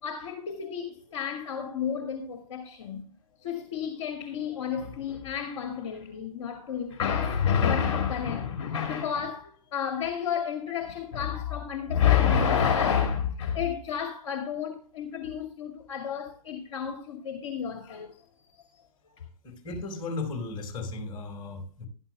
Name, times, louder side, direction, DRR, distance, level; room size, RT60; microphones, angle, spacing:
voice 1, 0.0-3.0 3.4-18.2 18.5-18.6, left 8 dB, 50° left, 2.1 m, -29 dB
voice 2, 19.4-21.9, left 3 dB, 25° left, 5.1 m, -35 dB
15.5 x 13.0 x 2.2 m
figure-of-eight pair, 115°, 20 cm